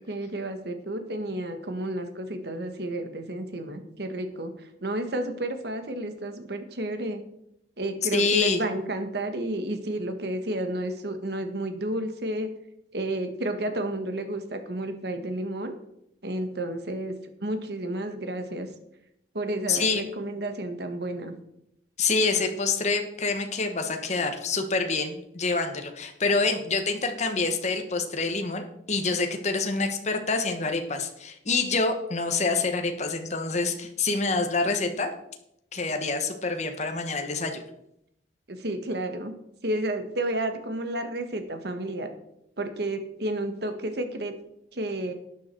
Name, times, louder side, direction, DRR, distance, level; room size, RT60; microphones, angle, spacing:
voice 1, 0.1-7.2 7.8-12.5 12.9-15.8 16.2-17.1 17.4-18.7 19.3-21.3 38.5-39.3 39.6-42.1 42.6-44.3 44.7-45.1, right 1 dB, 60° right, 7 dB, 1.5 m, -31 dB
voice 2, 8.1-8.6 19.7-20.0 22.0-35.1 35.7-37.6, left 3 dB, 40° left, 5 dB, 1.3 m, -26 dB
12.0 x 9.3 x 4.5 m, 0.78 s
head